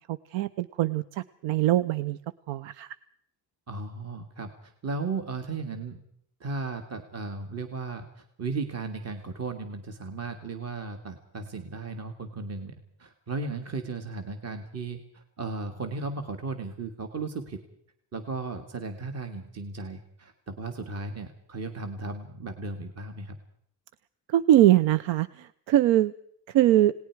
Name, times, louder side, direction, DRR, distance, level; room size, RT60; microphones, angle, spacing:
voice 1, 0.0-2.2 2.5-3.0 24.3-26.1 26.5-26.9, right 13 dB, 80° right, 17 dB, 0.7 m, -23 dB
voice 2, 3.7-6.0 6.4-17.6 18.1-23.4, right 3 dB, 35° right, 6 dB, 1.9 m, -35 dB
29.5 x 19.0 x 4.7 m, 0.69 s
cardioid pair, 140°, 44 cm